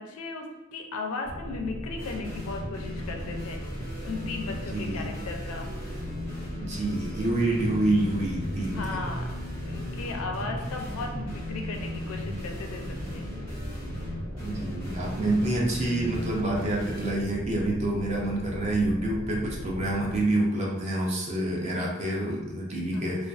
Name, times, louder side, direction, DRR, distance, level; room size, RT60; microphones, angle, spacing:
voice 1, 0.0-3.6 4.0-5.7 8.7-9.3 9.6-13.3 22.9-23.2, left 3 dB, 85° left, 3 dB, 0.4 m, -36 dB
sound 1, 1.2-20.2, equal, 15° right, 1.0 m, -38 dB
sound 2, 2.0-17.1, equal, 90° right, 1.4 m, -38 dB
voice 2, 4.7-5.1 6.6-9.0 14.4-23.3, right 1 dB, 30° right, -2 dB, 0.4 m, -27 dB
2.4 x 2.3 x 2.3 m, 0.99 s
head